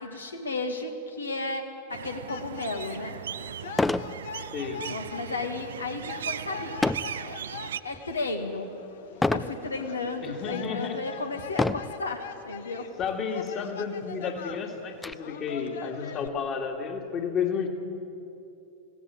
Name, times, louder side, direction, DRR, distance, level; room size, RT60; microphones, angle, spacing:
voice 1, 0.0-3.1 4.9-6.8 7.2-7.4 7.8-8.7 9.3-12.9, left 3 dB, 75° left, 5 dB, 2.0 m, -33 dB
sound 1, 1.9-7.8, right 9 dB, 65° right, 0.4 m, -38 dB
sound 2, 2.3-16.3, left 7 dB, 60° left, 1.1 m, -43 dB
sound 3, 2.8-2.9 3.7-4.2 4.6-4.9 6.8-7.2 7.8-8.2 9.2-9.6 10.3-10.4 11.5-12.0 13.0-13.1 13.5-13.6 14.0-15.1, left 2 dB, 10° left, 0.5 m, -27 dB
voice 2, 4.5-4.9 10.2-11.0 13.0-17.7, left 6 dB, 30° left, 3 dB, 2.4 m, -31 dB
20.5 x 16.5 x 8.1 m, 2.8 s
figure-of-eight pair, 90°, 0 cm